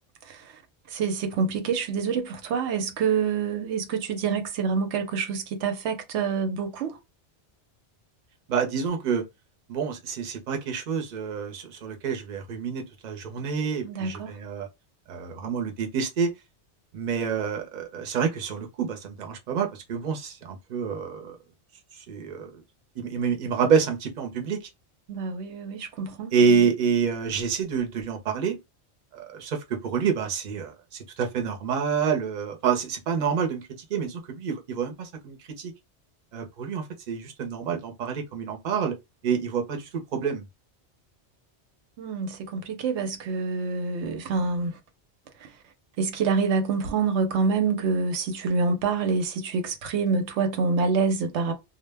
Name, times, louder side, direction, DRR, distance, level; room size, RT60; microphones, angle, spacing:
voice 1, 0.2-0.6 0.9-7.0 13.8-14.3 25.1-26.3 42.0-44.8 45.4-45.5 46.0-51.5, right 5 dB, 85° right, 0.9 m, -27 dB
voice 2, 8.5-9.2 9.7-14.7 15.1-16.3 16.9-21.4 21.9-22.6 23.0-24.7 26.3-28.6 29.1-35.7 36.3-39.0 39.2-40.4, right 6 dB, 50° right, 0.7 m, -28 dB
2.1 x 2.1 x 3.2 m
omnidirectional pair, 1.2 m